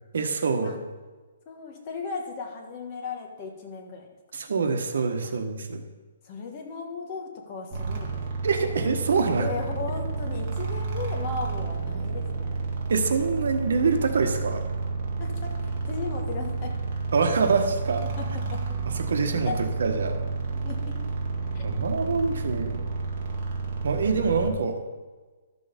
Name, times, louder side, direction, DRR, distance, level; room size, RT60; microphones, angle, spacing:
voice 1, 0.1-0.8 4.3-5.8 8.4-9.5 12.9-14.6 17.1-18.0 18.9-20.2 21.6-22.7 23.8-24.8, right 4 dB, 70° right, 5 dB, 1.4 m, -25 dB
voice 2, 1.5-4.1 6.2-8.2 9.4-12.5 15.2-16.7 18.2-18.8 19.5-19.6 20.5-20.9 21.5-21.7 22.0-22.7, left 4 dB, 25° left, 2 dB, 1.5 m, -36 dB
sound 1, 7.7-24.5, right 4 dB, 35° right, 1.9 m, -30 dB
12.5 x 6.9 x 5.2 m, 1.3 s
hypercardioid pair, 170°, 0 cm